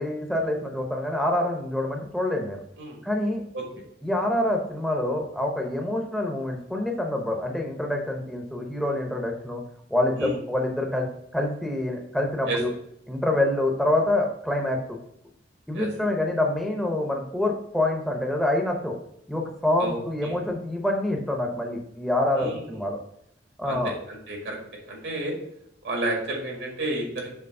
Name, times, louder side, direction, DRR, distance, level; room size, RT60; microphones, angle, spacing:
voice 1, 0.0-2.6 3.0-3.4 4.0-9.6 9.9-11.1 11.3-12.7 13.1-15.0 15.7-18.9 19.3-23.0 23.6-23.9, left 1 dB, ahead, 1 dB, 0.7 m, -26 dB
voice 2, 19.8-20.4 22.4-22.8 23.6-25.3 25.8-27.3, right 1 dB, 85° right, 0 dB, 2.0 m, -31 dB
6.8 x 3.0 x 5.3 m, 0.73 s
head